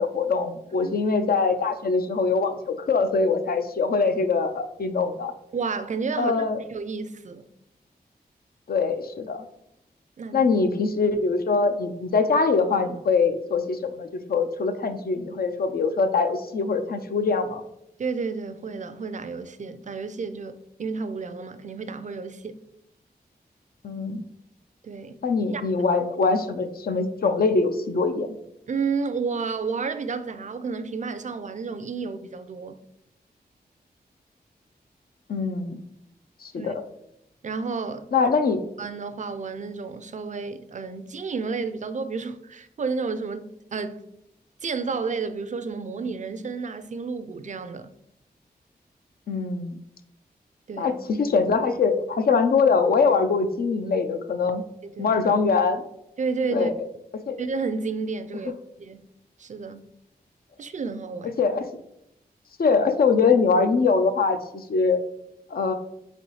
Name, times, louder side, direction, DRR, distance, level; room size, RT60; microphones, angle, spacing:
voice 1, 0.0-5.3 6.2-6.6 8.7-9.5 10.3-17.6 23.8-24.2 25.2-28.3 35.3-35.8 36.4-36.8 38.1-38.6 49.3-49.8 50.8-54.6 55.0-55.8 56.5-56.7 57.3-57.4 61.2-61.6 62.6-65.0 65.5-65.7, left 4 dB, 65° left, 0.5 m, -23 dB
voice 2, 5.5-6.4 6.7-7.5 10.2-10.4 18.0-22.6 24.8-25.2 25.5-25.6 28.7-32.8 36.6-36.7 37.4-38.1 38.8-44.0 44.6-47.9 50.7-50.9 54.8-55.2 56.2-56.7 57.4-58.5 58.8-59.1 59.4-59.9 60.6-61.4, right 4 dB, 50° right, 0.4 m, -31 dB
4.1 x 4.0 x 3.1 m
cardioid pair, 60°, 17 cm